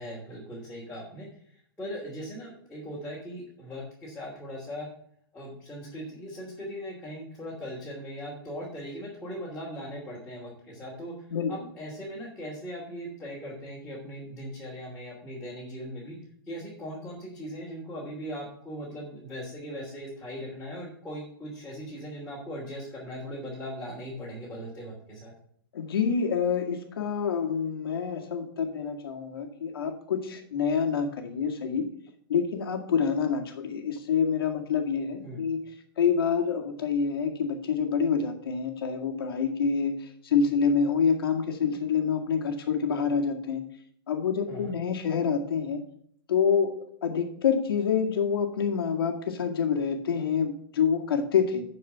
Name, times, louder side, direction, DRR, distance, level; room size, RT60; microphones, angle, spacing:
voice 1, 0.0-4.9 5.3-11.1 11.5-16.2 16.5-25.3 35.2-35.4 44.5-44.7, equal, 5° left, -8 dB, 3.0 m, -39 dB
voice 2, 25.7-31.9 32.3-35.6 36.0-43.6 44.1-45.8 46.3-51.6, left 6 dB, 80° left, 3 dB, 2.0 m, -27 dB
11.0 x 4.8 x 5.7 m, 0.65 s
hypercardioid pair, 130°, 12 cm